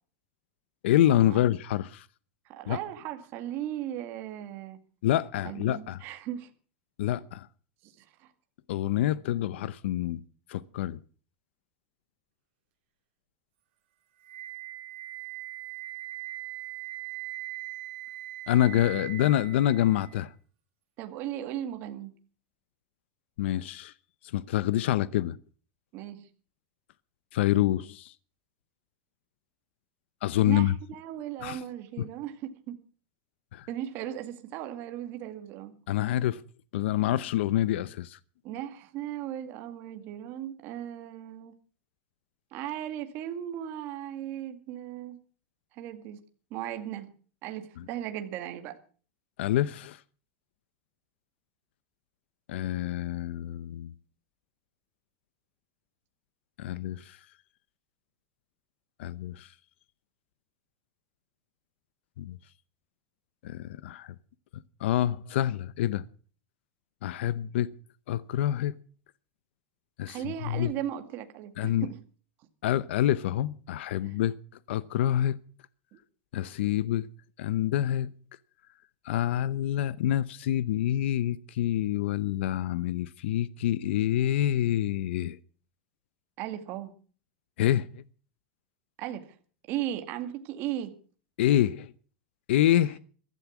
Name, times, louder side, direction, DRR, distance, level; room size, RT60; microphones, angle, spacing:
voice 1, 0.8-2.1 2.7-2.8 5.0-6.0 7.0-7.5 8.7-10.2 10.5-11.0 18.5-20.3 23.4-23.9 24.3-25.4 27.3-28.1 30.2-30.8 31.4-31.6 32.0-32.1 33.5-33.7 35.9-36.4 36.7-38.2 47.8-47.9 49.4-50.0 52.5-53.9 56.6-57.2 59.0-59.5 62.2-62.4 63.4-64.1 64.8-66.0 67.0-67.7 68.1-68.7 70.0-70.7 71.6-71.9 72.6-74.4 74.7-75.4 76.3-77.1 77.4-78.1 79.0-85.4 87.6-88.0 91.4-91.9 92.5-93.0, left 12 dB, 75° left, 0.8 m, -27 dB
voice 2, 2.5-4.8 5.4-6.5 7.8-7.9 8.2-8.3 21.0-22.1 25.9-26.3 30.5-32.8 33.7-35.8 38.4-41.5 42.5-45.2 45.7-46.2 46.5-47.1 47.4-48.8 70.1-72.0 74.0-74.1 75.9-76.0 86.4-86.9 89.0-89.4 89.7-91.0, right 11 dB, 35° right, 2.0 m, -37 dB
Wind instrument woodwind instrument, 14.2-20.2, right 18 dB, 60° right, 3.4 m, -40 dB
15.5 x 12.5 x 6.1 m
supercardioid pair, 170°, 6 cm